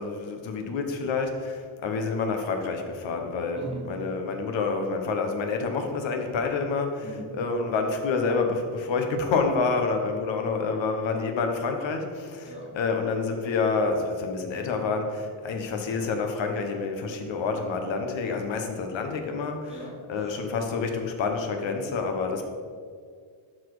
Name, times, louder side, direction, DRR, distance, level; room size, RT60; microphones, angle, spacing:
voice 1, 0.0-3.6 3.9-7.0 7.4-19.7 20.1-22.4, left 4 dB, 65° left, 4 dB, 1.3 m, -28 dB
voice 2, 3.5-4.1 7.0-7.4 12.4-12.8 19.7-20.6, right 1 dB, 15° right, -2 dB, 1.4 m, -40 dB
12.0 x 4.3 x 4.9 m, 2.1 s
cardioid pair, 135°, 48 cm